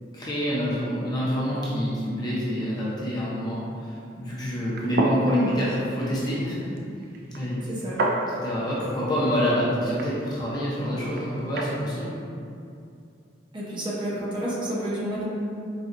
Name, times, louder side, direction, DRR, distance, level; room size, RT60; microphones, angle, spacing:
voice 1, 0.1-6.7 7.3-7.6 8.3-12.3, equal, 25° left, -8 dB, 0.7 m, -27 dB
sound 1, 4.6-11.8, right 2 dB, 55° right, 0.3 m, -32 dB
voice 2, 13.5-15.2, right 1 dB, 25° right, -7 dB, 0.7 m, -29 dB
4.2 x 2.4 x 2.5 m, 2.5 s
head